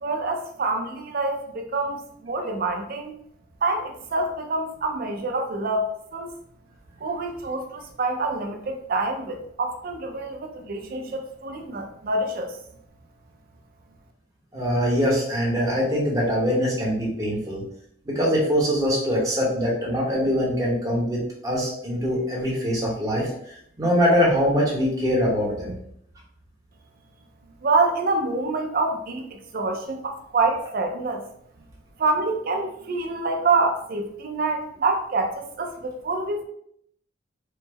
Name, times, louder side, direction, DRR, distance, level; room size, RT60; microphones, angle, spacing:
voice 1, 0.0-3.1 3.6-6.3 7.0-12.5 27.6-31.2 32.0-36.4, right 3 dB, 50° right, 4 dB, 0.5 m, -26 dB
voice 2, 14.5-17.6 18.0-25.7, equal, 20° right, -5 dB, 0.9 m, -23 dB
3.2 x 2.0 x 3.3 m, 0.69 s
head